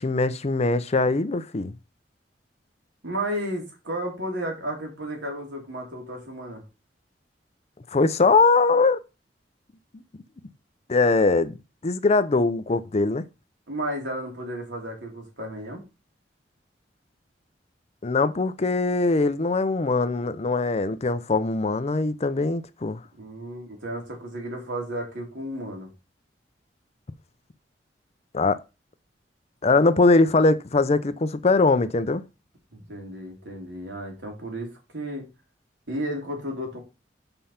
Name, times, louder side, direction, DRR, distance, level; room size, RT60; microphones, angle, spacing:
voice 1, 0.0-1.7 7.9-9.0 10.9-11.6 11.8-13.2 18.0-23.0 28.3-28.6 29.6-32.2, left 3 dB, 35° left, 0.6 m, -21 dB
voice 2, 3.0-6.6 13.7-15.8 23.2-25.9 32.7-35.2 35.9-36.8, right 1 dB, 80° right, 3.3 m, -33 dB
5.6 x 5.3 x 5.7 m
head